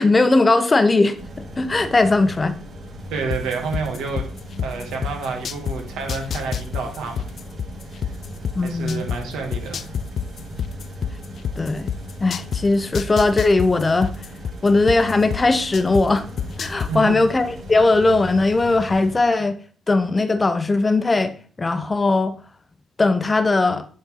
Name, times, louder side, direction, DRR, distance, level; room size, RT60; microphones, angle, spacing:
voice 1, 0.0-2.6 8.5-9.1 11.6-11.9 12.2-14.1 14.6-16.2 16.6-19.6 19.9-22.3 23.0-23.9, left 3 dB, 25° left, 0.8 m, -19 dB
sound 1, 1.1-19.2, equal, 45° right, 3.9 m, -38 dB
voice 2, 3.1-4.3 4.6-7.3 7.9-8.1 8.6-9.9 16.9-17.2, right 4 dB, 85° right, 2.3 m, -29 dB
sound 2, 3.3-5.8 6.1-9.2 9.5-12.6 12.9-16.0 16.4-16.9, left 8 dB, 55° left, 0.4 m, -26 dB
10.0 x 4.3 x 3.8 m
cardioid pair, 90°, 0 cm